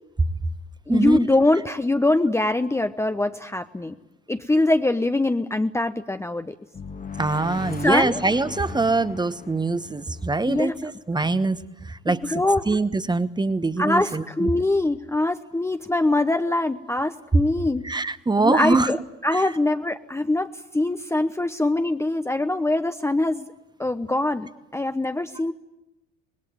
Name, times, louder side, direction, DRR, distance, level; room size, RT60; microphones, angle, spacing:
voice 1, 0.9-3.9 4.3-6.5 7.8-8.2 10.5-10.7 12.1-12.7 13.8-17.8 18.4-23.5 23.8-25.5, left 2 dB, 10° left, 8 dB, 0.9 m, -23 dB
sound 1, 6.7-11.3, left 5 dB, 25° left, 1.5 m, -38 dB
voice 2, 7.2-11.6 11.9-14.5 17.8-18.9 19.3-19.4, right 3 dB, 10° right, 14 dB, 1.2 m, -23 dB
26.0 x 21.0 x 9.1 m, 0.91 s
figure-of-eight pair, 60°, 35 cm